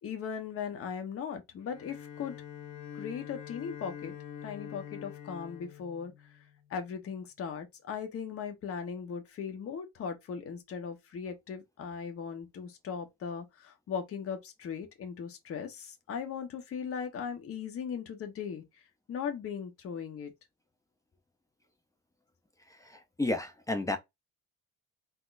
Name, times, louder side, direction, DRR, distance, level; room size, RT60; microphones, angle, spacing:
voice 1, 0.0-2.3 2.9-4.1 4.4-6.1 6.7-18.6 19.1-20.3, left 7 dB, 40° left, 1.1 m, -38 dB
Bowed string instrument, 1.6-6.8, left 9 dB, 65° left, 1.0 m, -45 dB
voice 2, 22.7-24.0, left 2 dB, 10° left, 0.5 m, -32 dB
4.1 x 3.7 x 2.6 m
cardioid pair, 160°, 36 cm